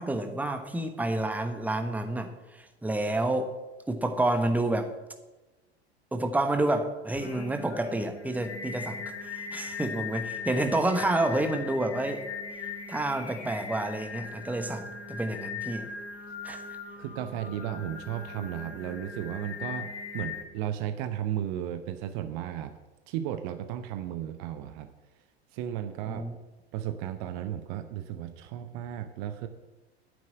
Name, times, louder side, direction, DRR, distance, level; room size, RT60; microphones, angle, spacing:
voice 1, 0.0-3.5 3.9-4.9 6.1-12.2 12.9-15.9 16.4-16.6 26.1-26.3, right 2 dB, 5° right, 7 dB, 1.2 m, -29 dB
Singing, 7.1-20.4, left 5 dB, 75° left, 1.8 m, -39 dB
voice 2, 17.0-22.7 23.1-24.9 25.5-26.3 26.7-29.5, right 11 dB, 45° right, 9 dB, 0.9 m, -34 dB
9.7 x 7.5 x 8.7 m, 1.1 s
figure-of-eight pair, 80°, 33 cm